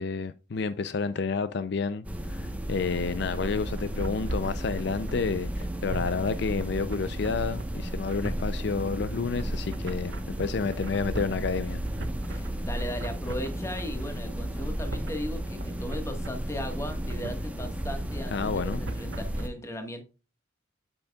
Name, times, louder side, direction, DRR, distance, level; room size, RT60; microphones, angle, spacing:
voice 1, 0.0-11.8 18.3-18.8, left 4 dB, 60° left, 0.5 m, -30 dB
sound 1, 2.0-19.5, right 1 dB, 5° right, 1.0 m, -34 dB
sound 2, 3.3-19.4, right 1 dB, 65° right, 1.1 m, -40 dB
voice 2, 12.3-20.0, left 1 dB, 15° left, 1.4 m, -37 dB
8.7 x 7.9 x 2.3 m
head